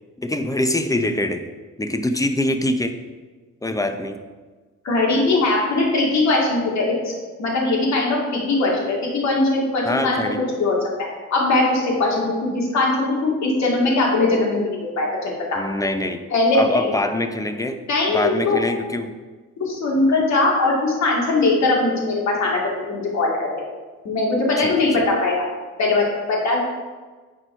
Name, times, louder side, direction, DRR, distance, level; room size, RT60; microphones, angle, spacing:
voice 1, 0.2-1.5 1.8-3.0 3.6-4.2 9.9-10.4 15.6-16.2 16.5-17.8 18.1-19.2 24.6-25.1, left 1 dB, 10° left, 8 dB, 0.7 m, -24 dB
voice 2, 4.8-10.8 11.3-12.9 13.2-15.6 16.3-16.9 17.9-18.6 19.6-22.6 22.9-23.6 24.0-25.4 25.8-26.6, left 2 dB, 65° left, -2 dB, 2.3 m, -20 dB
8.7 x 4.6 x 4.5 m, 1.4 s
cardioid pair, 90°, 30 cm